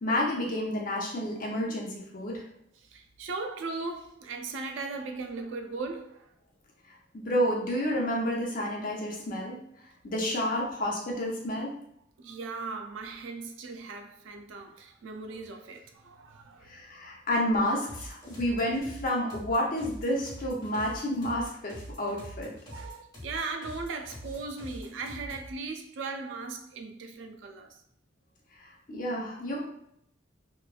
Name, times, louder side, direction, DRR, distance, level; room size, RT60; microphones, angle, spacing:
voice 1, 0.0-2.4 7.1-9.6 10.0-11.7 16.7-22.5 28.9-29.6, left 1 dB, 45° left, 0.7 m, -30 dB
voice 2, 2.8-6.3 10.5-10.6 12.2-16.8 22.7-27.8, right 3 dB, 75° right, 0.4 m, -38 dB
sound 1, 17.9-25.5, equal, 20° left, 1.3 m, -44 dB
3.0 x 2.3 x 2.3 m
head